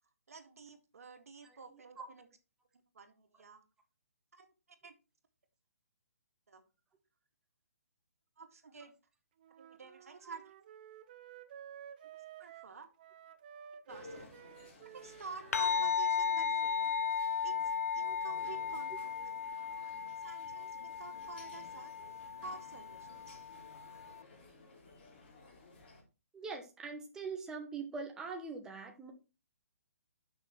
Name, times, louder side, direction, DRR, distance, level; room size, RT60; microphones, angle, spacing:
voice 1, 0.3-2.3 2.9-3.6 4.3-4.5 4.8-4.9 6.5-6.6 8.4-8.9 9.6-10.5 12.1-12.9 13.9-14.3 14.8-17.6 17.9-18.9 19.2-19.8 20.2-21.9 22.4-23.4, right 4 dB, 80° right, 6 dB, 2.0 m, -50 dB
Wind instrument woodwind instrument, 9.4-16.7, right 9 dB, 35° right, 0.6 m, -53 dB
sound 1, 13.9-26.0, left 3 dB, 45° left, 3.1 m, -56 dB
sound 2, 15.5-24.2, left 6 dB, 85° left, 0.4 m, -36 dB
voice 2, 26.3-29.1, right 4 dB, 5° right, 2 dB, 1.3 m, -42 dB
8.3 x 6.2 x 4.4 m, 0.30 s
hypercardioid pair, 160°, 8 cm